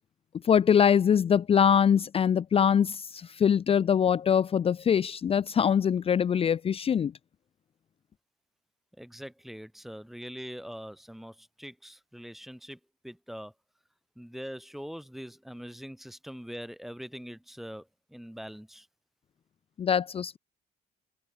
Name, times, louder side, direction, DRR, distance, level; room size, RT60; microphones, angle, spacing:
voice 1, 0.4-7.1 19.8-20.4, left 8 dB, 35° left, 0.6 m, -23 dB
voice 2, 9.0-13.5 14.2-18.9, equal, ahead, 1.1 m, -43 dB
cardioid pair, 110°, 17 cm